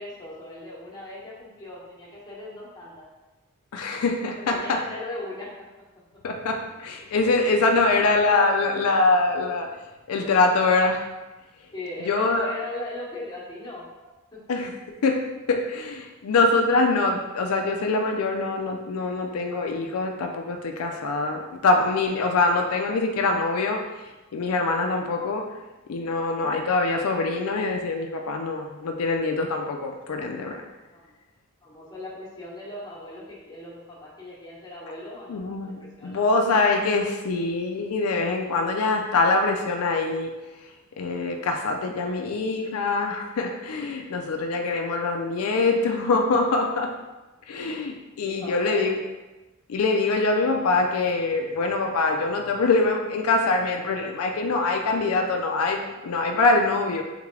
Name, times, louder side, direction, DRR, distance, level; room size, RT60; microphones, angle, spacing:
voice 1, 0.0-3.0 4.4-5.5 11.7-13.8 14.3-14.4 30.9-31.1 31.6-36.2 48.2-48.8, left 1 dB, 20° left, -6 dB, 0.9 m, -38 dB
voice 2, 3.7-4.8 6.2-9.8 10.1-11.1 12.1-12.5 14.5-23.9 24.3-25.5 25.9-30.6 35.3-40.3 41.0-46.9 47.5-49.0 49.7-57.0, left 3 dB, 80° left, 3 dB, 0.4 m, -24 dB
3.5 x 3.2 x 3.7 m, 1.1 s
head